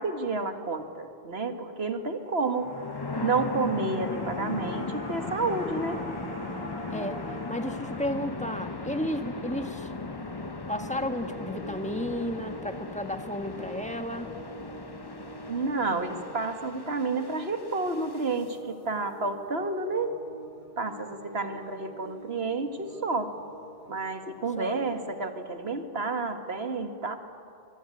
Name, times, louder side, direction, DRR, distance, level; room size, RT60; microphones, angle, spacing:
voice 1, 0.0-2.7 3.2-6.0 15.5-20.2 20.8-23.3 23.9-27.2, right 3 dB, 70° right, 6 dB, 2.1 m, -30 dB
sound 1, 2.2-12.6 12.9-13.0, left 1 dB, 70° left, 5.5 m, -43 dB
sound 2, 2.6-18.5, left 3 dB, 25° left, 0.9 m, -38 dB
voice 2, 7.5-9.9 10.7-14.3 24.6-24.8, left 1 dB, 5° left, 6 dB, 1.5 m, -33 dB
sound 3, 9.9-25.1, equal, 45° left, 6.5 m, -47 dB
25.0 x 23.0 x 9.8 m, 2.4 s
omnidirectional pair, 1.1 m